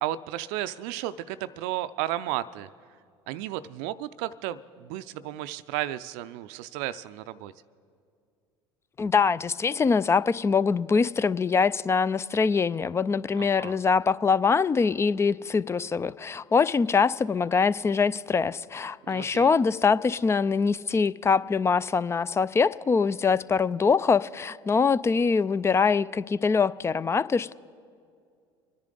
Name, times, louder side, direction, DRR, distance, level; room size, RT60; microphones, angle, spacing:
voice 1, 0.0-2.7 3.3-7.5 13.4-13.7 19.0-19.5, right 14 dB, 65° right, 13 dB, 0.4 m, -33 dB
voice 2, 9.0-27.5, left 5 dB, 20° left, 19 dB, 0.3 m, -23 dB
25.0 x 10.5 x 3.9 m, 2.3 s
hypercardioid pair, 65°, 14 cm